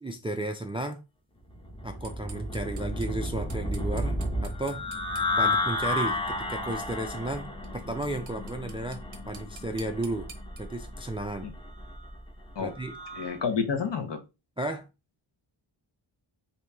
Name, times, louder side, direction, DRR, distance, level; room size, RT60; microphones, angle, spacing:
voice 1, 0.0-1.0 1.8-4.8 5.4-10.3 10.6-11.5 12.6-13.0 14.6-14.9, right 1 dB, 15° right, 0.3 m, -34 dB
sound 1, 1.5-13.4, left 2 dB, 10° left, 0.7 m, -32 dB
sound 2, 2.0-5.3 7.6-7.7 8.0-10.6, right 5 dB, 40° right, 0.7 m, -47 dB
voice 2, 13.1-14.2, left 6 dB, 60° left, 0.8 m, -29 dB
2.9 x 2.7 x 3.4 m
wide cardioid pair, 75°, 50 cm